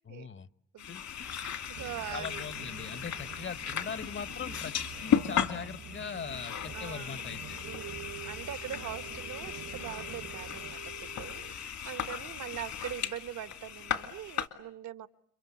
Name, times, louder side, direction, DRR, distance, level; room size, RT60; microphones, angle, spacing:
voice 1, 0.1-0.5 0.9-1.0 2.1-4.8 5.0-7.6, left 6 dB, 40° left, 15 dB, 1.0 m, -40 dB
sound 1, 0.8-14.5, left 8 dB, 70° left, 2.5 m, -36 dB
voice 2, 1.2-2.4 6.7-7.2 7.6-15.1, right 11 dB, 70° right, 12 dB, 1.3 m, -42 dB
sound 2, 1.7-10.7, right 9 dB, 55° right, 1.0 m, -48 dB
sound 3, 6.0-11.5, right 14 dB, 90° right, 1.5 m, -50 dB
29.5 x 23.5 x 8.4 m, 0.69 s
cardioid pair, 90°, 30 cm